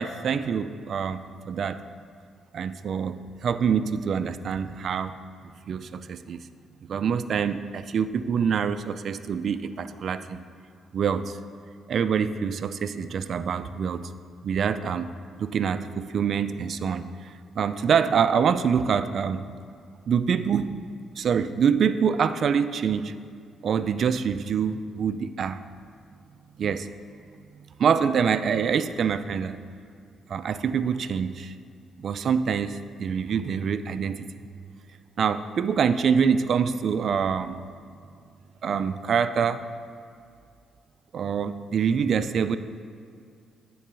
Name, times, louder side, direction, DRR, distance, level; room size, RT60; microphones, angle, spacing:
voice 1, 0.0-1.8 2.5-5.2 5.7-6.4 6.9-10.4 10.9-11.4 11.9-14.1 14.4-15.1 15.4-19.5 20.1-20.8 21.2-23.1 23.6-25.6 26.6-26.9 27.8-29.6 30.3-31.5 32.0-34.3 35.2-37.6 38.6-39.6 41.1-42.6, right 7 dB, 55° right, 12 dB, 0.4 m, -25 dB
10.0 x 3.9 x 6.8 m, 2.3 s
cardioid pair, 90°, 0 cm